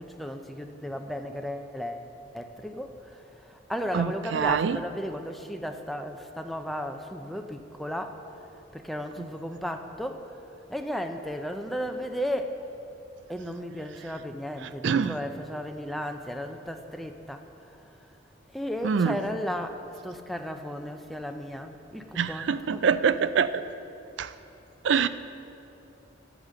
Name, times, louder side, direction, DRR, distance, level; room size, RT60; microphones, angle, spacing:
voice 1, 0.0-2.1 2.3-8.2 8.7-10.4 10.7-12.6 13.3-17.9 18.5-22.9, equal, ahead, 5 dB, 0.5 m, -35 dB
voice 2, 3.9-4.8 14.8-15.1 18.8-19.2 22.2-23.7 24.2-24.3 24.8-25.1, right 6 dB, 75° right, 14 dB, 0.4 m, -24 dB
8.6 x 8.0 x 7.6 m, 2.8 s
head